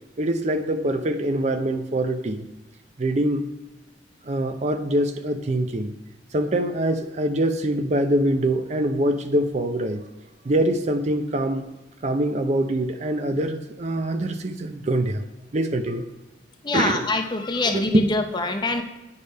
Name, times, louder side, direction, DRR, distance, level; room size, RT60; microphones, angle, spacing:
voice 1, 0.2-2.5 3.0-3.5 4.2-5.9 6.3-10.0 10.4-11.7 12.0-15.2 15.5-16.0 16.7-17.1 17.6-18.3, right 1 dB, 40° right, 8 dB, 0.5 m, -24 dB
voice 2, 16.6-18.8, left 3 dB, 25° left, 6 dB, 0.6 m, -24 dB
9.5 x 3.4 x 5.3 m, 1.1 s
head